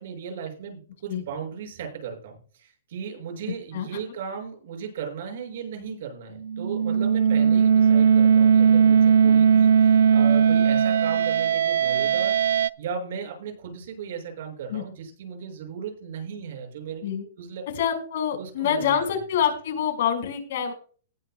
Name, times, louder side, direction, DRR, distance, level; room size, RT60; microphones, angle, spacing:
voice 1, 0.0-17.1 17.4-17.6 18.4-18.9, right 6 dB, 60° right, 3 dB, 5.9 m, -36 dB
sound 1, 6.4-12.7, right 7 dB, 85° right, 0.4 m, -18 dB
voice 2, 17.7-20.7, left 8 dB, 60° left, 4 dB, 5.0 m, -26 dB
19.0 x 10.5 x 2.2 m, 0.41 s
hypercardioid pair, 165°, 0 cm